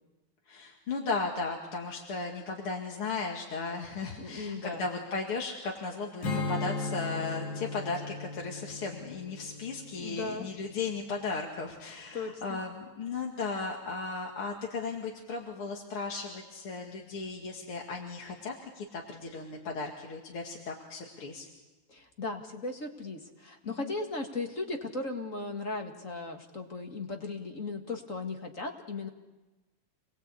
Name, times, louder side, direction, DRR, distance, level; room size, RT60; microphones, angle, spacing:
voice 1, 0.5-21.5 23.6-23.9, left 4 dB, 50° left, 0 dB, 2.9 m, -36 dB
voice 2, 4.2-4.8 10.0-10.5 12.1-12.6 21.9-29.1, left 3 dB, 30° left, 3 dB, 2.0 m, -37 dB
Strum, 6.2-11.6, left 3 dB, 85° left, 4.5 m, -37 dB
28.0 x 20.5 x 8.4 m, 1.1 s
omnidirectional pair, 3.3 m